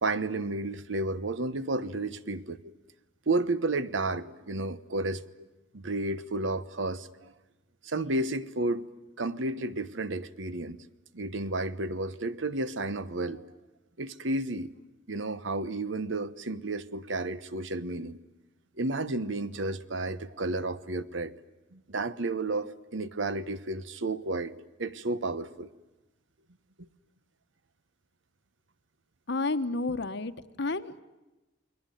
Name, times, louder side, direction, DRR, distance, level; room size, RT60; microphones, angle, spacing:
voice 1, 0.0-2.7 3.3-5.2 5.7-7.3 7.8-8.8 9.2-10.8 11.1-13.4 14.0-14.7 15.1-18.2 18.8-21.3 21.7-24.5 24.8-25.7, right 2 dB, 75° right, 1.1 m, -32 dB
voice 2, 29.3-30.3 30.6-31.0, left 3 dB, 65° left, 1.1 m, -30 dB
29.5 x 21.0 x 9.2 m
head